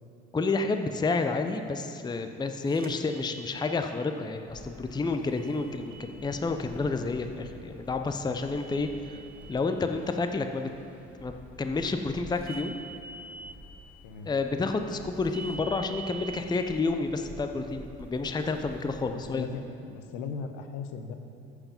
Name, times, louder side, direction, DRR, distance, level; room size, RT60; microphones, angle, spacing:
voice 1, 0.3-9.2 9.5-10.7 11.2-12.8 14.2-19.5, left 3 dB, 10° left, 6 dB, 0.6 m, -30 dB
sound 1, 2.7-3.8 5.4-6.5 8.5-9.6 12.4-13.6 15.3-16.4, right 4 dB, 25° right, 1.1 m, -45 dB
sound 2, 4.5-19.6, equal, 5° right, 1.6 m, -50 dB
voice 2, 19.1-21.1, left 5 dB, 65° left, 7 dB, 0.9 m, -38 dB
14.0 x 4.9 x 5.3 m, 2.6 s
hypercardioid pair, 55°, 35 cm